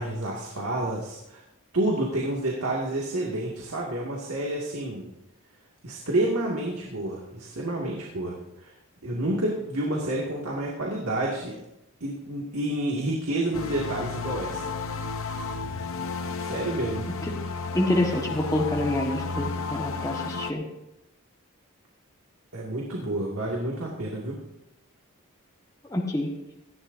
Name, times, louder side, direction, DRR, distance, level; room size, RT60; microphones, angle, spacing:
voice 1, 0.0-1.4 1.7-5.1 5.8-8.7 9.0-11.5 12.0-14.6 16.4-17.1 22.5-24.4, right 1 dB, 75° right, -2 dB, 2.2 m, -29 dB
sound 1, 13.5-20.5, left 4 dB, 65° left, 0.9 m, -32 dB
voice 2, 17.7-20.6 25.9-26.3, left 1 dB, 15° left, 0 dB, 1.5 m, -27 dB
18.5 x 14.5 x 2.7 m, 0.90 s
head